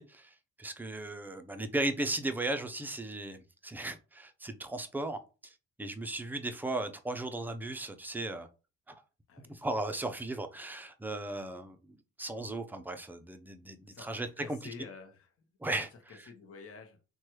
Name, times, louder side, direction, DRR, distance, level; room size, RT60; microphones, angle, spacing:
voice 1, 0.0-8.5 8.9-9.0 9.5-11.8 12.2-14.6 15.6-15.9, right 2 dB, 5° right, 0.4 m, -36 dB
voice 2, 9.3-9.7 13.9-15.3 16.1-17.0, left 5 dB, 50° left, 0.9 m, -49 dB
3.1 x 2.2 x 3.0 m
cardioid pair, 90°, 30 cm